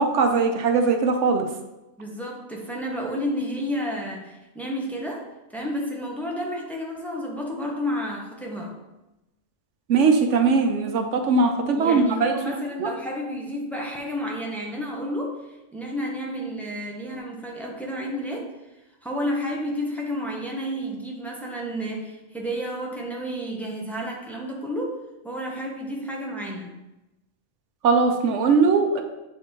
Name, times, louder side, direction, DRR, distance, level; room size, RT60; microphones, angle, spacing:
voice 1, 0.0-1.5 9.9-12.3 12.8-12.9 27.8-29.0, right 4 dB, 65° right, 5 dB, 1.0 m, -20 dB
voice 2, 2.0-8.7 11.7-15.4 15.7-18.5 19.0-25.0 25.2-26.8, equal, ahead, -2 dB, 0.8 m, -31 dB
7.2 x 3.4 x 4.4 m, 0.98 s
omnidirectional pair, 1.4 m